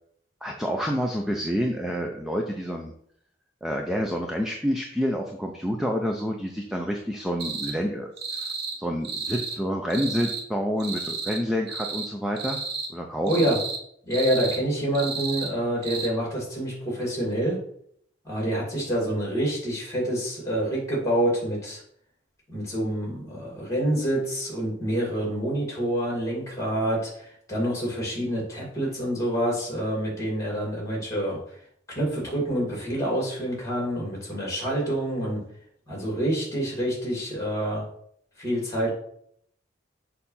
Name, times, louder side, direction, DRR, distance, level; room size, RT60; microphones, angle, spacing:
voice 1, 0.4-2.9 3.6-8.5 8.8-12.6 12.9-13.3, equal, ahead, 1 dB, 0.5 m, -28 dB
sound 1, 7.4-7.7 8.2-8.8 9.0-9.6 9.9-10.4 10.8-11.4 11.7-12.1 12.4-12.9 13.3-13.8 14.1-14.6 14.9-15.5 15.8-16.1, right 4 dB, 60° right, 1.0 m, -32 dB
voice 2, 13.3-13.6 14.1-17.6 18.2-21.8 22.5-31.4 31.9-35.4 35.9-37.8 38.4-38.9, right 1 dB, 15° left, -3 dB, 2.5 m, -27 dB
6.5 x 2.8 x 5.5 m, 0.67 s
head